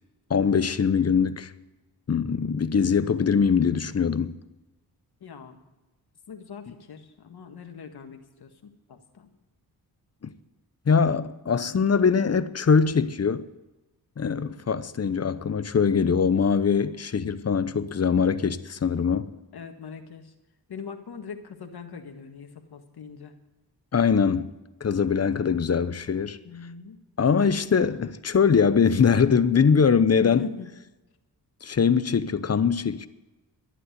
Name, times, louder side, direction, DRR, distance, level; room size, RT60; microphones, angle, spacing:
voice 1, 0.3-1.5 2.1-4.3 10.9-13.4 14.2-19.3 23.9-24.5 24.8-26.4 27.2-30.4 31.6-33.1, left 6 dB, 40° left, 0.8 m, -22 dB
voice 2, 5.2-5.6 6.3-9.3 14.2-14.6 17.4-17.6 19.1-20.3 20.7-23.4 25.4-25.6 26.4-27.0 30.2-30.8, left 6 dB, 70° left, 1.8 m, -42 dB
12.0 x 11.0 x 8.1 m
cardioid pair, 80°, 40 cm